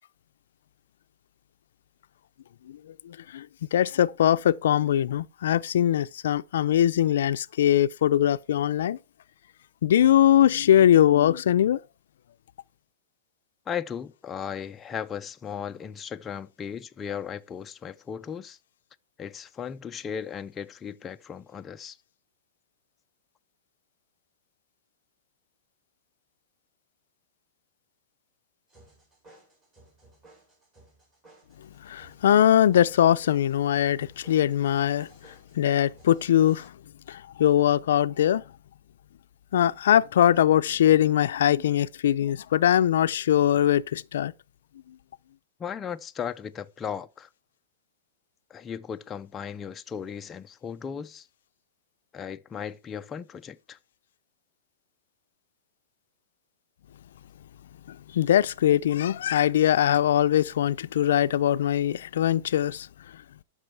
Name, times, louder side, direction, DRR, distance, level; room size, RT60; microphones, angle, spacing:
voice 1, 3.1-9.0 9.8-11.8 31.8-35.1 35.6-36.7 37.1-38.4 39.5-44.3 57.9-62.9, left 11 dB, 75° left, 0.4 m, -22 dB
voice 2, 13.7-18.6 19.2-22.0 45.6-47.3 48.5-51.3 52.1-53.8, left 7 dB, 15° left, 0.4 m, -36 dB
sound 1, 28.7-36.7, right 2 dB, 25° right, 6.3 m, -57 dB
13.5 x 6.1 x 4.6 m
supercardioid pair, 160°, 0 cm